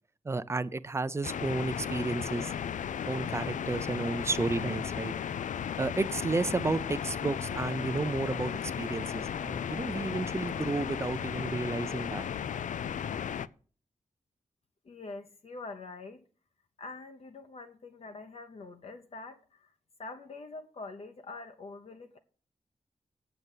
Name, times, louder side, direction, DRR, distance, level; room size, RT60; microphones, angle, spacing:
voice 1, 0.2-2.5 3.0-5.1 5.8-12.3, right 3 dB, 20° right, 0.5 m, -32 dB
sound 1, 1.2-13.5, left 8 dB, 85° left, 0.4 m, -35 dB
voice 2, 14.9-16.2 16.8-19.4 20.0-22.2, left 3 dB, 55° left, 0.9 m, -44 dB
8.1 x 7.9 x 7.3 m
wide cardioid pair, 155°, 13 cm